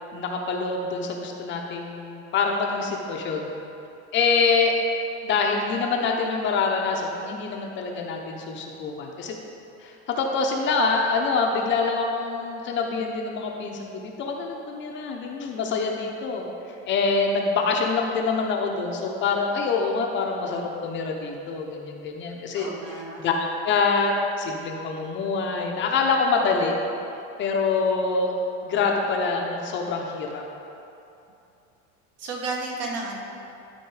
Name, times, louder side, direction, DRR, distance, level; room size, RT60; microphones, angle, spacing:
voice 1, 0.1-3.5 4.1-4.8 5.2-9.3 9.8-16.4 16.9-22.7 23.2-23.3 23.6-26.8 27.4-28.3 28.6-30.4, left 4 dB, 35° left, 1 dB, 0.8 m, -25 dB
voice 2, 22.5-23.2 32.2-33.2, right 3 dB, 45° right, 0 dB, 1.4 m, -32 dB
12.5 x 4.3 x 4.8 m, 2.7 s
cardioid pair, 160°, 33 cm